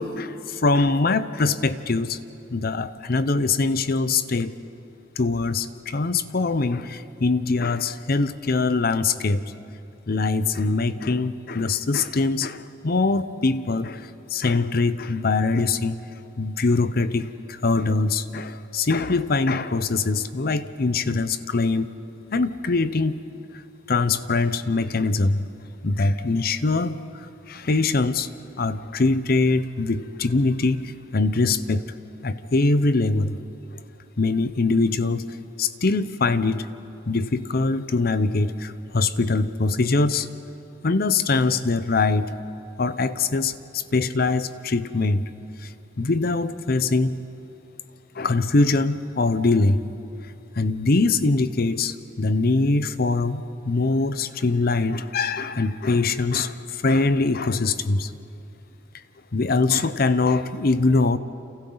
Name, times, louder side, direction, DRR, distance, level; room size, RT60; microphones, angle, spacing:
voice 1, 0.0-2.2 2.5-4.6 5.2-9.4 10.1-16.0 16.4-21.9 22.3-23.2 23.5-23.6 23.9-25.4 25.8-28.3 28.6-31.8 32.2-33.4 34.2-35.3 35.6-36.7 37.1-40.3 40.8-42.3 42.8-45.3 45.6-45.7 46.0-47.2 48.1-49.8 50.6-58.1 59.3-61.2, left 3 dB, 55° left, 13 dB, 0.7 m, -23 dB
29.5 x 28.0 x 4.0 m, 2.8 s
head